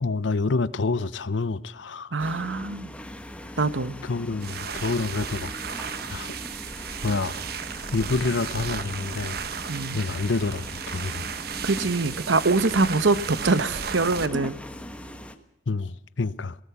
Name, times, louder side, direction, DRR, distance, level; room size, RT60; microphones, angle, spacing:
voice 1, 0.0-2.1 4.0-5.5 6.1-6.4 7.0-7.3 7.9-9.4 9.9-11.3 15.7-16.6, left 3 dB, 80° left, 0.7 m, -27 dB
voice 2, 2.1-2.9 3.6-3.9 9.7-10.0 11.6-14.5, right 3 dB, 90° right, 1.1 m, -24 dB
sound 1, 2.2-15.3, equal, 5° left, 1.3 m, -40 dB
sound 2, 4.3-14.3, right 6 dB, 55° right, 1.2 m, -34 dB
19.0 x 18.5 x 8.2 m
head